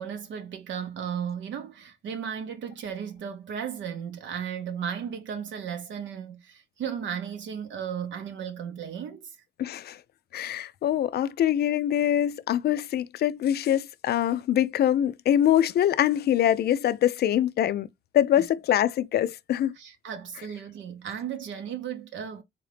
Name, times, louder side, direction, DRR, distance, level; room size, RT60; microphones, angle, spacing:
voice 1, 0.0-9.4 18.4-18.5 19.7-22.4, right 8 dB, 70° right, 0.7 m, -35 dB
voice 2, 9.6-10.0 10.3-17.9 18.1-19.7, left 11 dB, 55° left, 0.4 m, -24 dB
3.8 x 2.8 x 3.2 m
cardioid pair, 90°, 20 cm